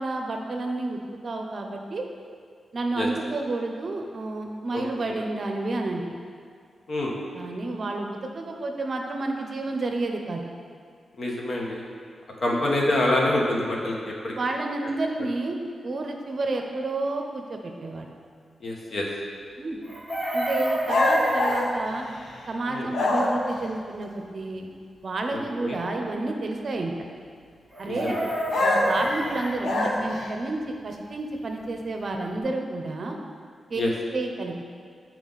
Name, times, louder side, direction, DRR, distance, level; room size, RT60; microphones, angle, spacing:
voice 1, 0.0-2.0 2.7-6.2 7.3-10.4 12.5-12.6 14.4-15.6 15.8-18.1 19.6-19.8 20.3-22.1 22.5-24.7 25.0-26.9 27.8-28.2 28.6-33.2 33.7-33.8 34.1-34.6, right 2 dB, 45° right, 3 dB, 0.7 m, -30 dB
voice 2, 4.7-5.1 6.9-7.1 11.2-11.8 12.4-14.3 18.6-19.1 22.7-22.9 25.3-25.8 27.8-28.2 33.7-33.9, left 1 dB, 50° left, -2 dB, 1.2 m, -26 dB
Chicken rooster, 19.8-21.7 27.7-29.5 31.8-31.9 32.1-32.4, right 1 dB, 5° left, 1.7 m, -30 dB
sound 1, 20.9-22.5 22.9-23.6 28.5-30.3, left 1 dB, 90° left, 1.0 m, -24 dB
9.0 x 4.5 x 4.0 m, 2.1 s
wide cardioid pair, 125°, 0 cm